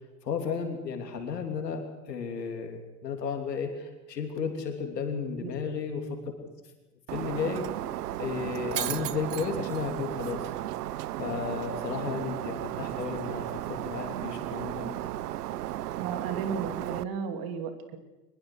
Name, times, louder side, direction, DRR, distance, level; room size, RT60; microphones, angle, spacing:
voice 1, 0.2-6.2 7.1-7.6 8.2-10.5 11.2-15.0, left 6 dB, 75° left, 5 dB, 3.5 m, -33 dB
Shatter, 7.1-17.0, right 14 dB, 65° right, 0.8 m, -34 dB
voice 2, 15.9-18.0, right 6 dB, 45° right, 7 dB, 2.8 m, -34 dB
23.5 x 21.0 x 6.4 m, 1.1 s
figure-of-eight pair, 80°, 50 cm